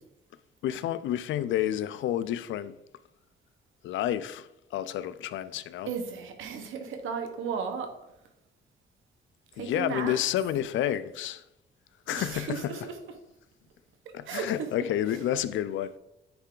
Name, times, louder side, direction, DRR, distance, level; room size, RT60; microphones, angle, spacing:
voice 1, 0.6-2.7 3.8-5.9 9.6-11.4 12.1-12.8 14.1-16.0, left 11 dB, 75° left, 0.4 m, -30 dB
voice 2, 5.9-7.9 9.6-10.2 12.1-13.0 14.3-14.8, right 6 dB, 85° right, 1.0 m, -34 dB
8.5 x 3.3 x 3.8 m
cardioid pair, 105°, 20 cm